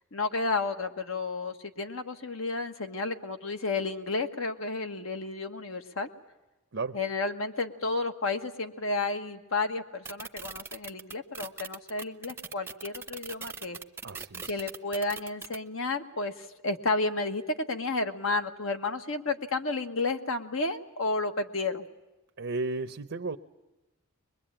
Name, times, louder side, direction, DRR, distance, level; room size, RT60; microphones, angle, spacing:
voice 1, 0.0-6.1 6.9-13.8 14.5-17.4 17.7-21.9, left 3 dB, 65° left, 7 dB, 1.5 m, -32 dB
sound 1, 10.0-15.6, right 5 dB, 10° right, 0.8 m, -40 dB
voice 2, 14.0-14.7 22.4-23.4, right 3 dB, 60° right, 7 dB, 0.8 m, -34 dB
23.0 x 22.0 x 8.9 m, 1.0 s
head